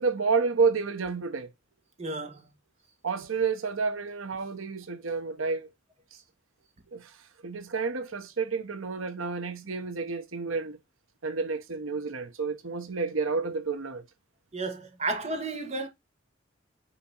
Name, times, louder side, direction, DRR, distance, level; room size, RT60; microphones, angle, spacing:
voice 1, 0.0-1.5 3.0-5.7 6.9-7.1 7.4-10.8 11.2-14.0, right 4 dB, 85° right, 1.0 m, -30 dB
voice 2, 2.0-2.4 14.5-15.9, right 3 dB, 30° right, 1.9 m, -32 dB
9.4 x 3.7 x 4.4 m
head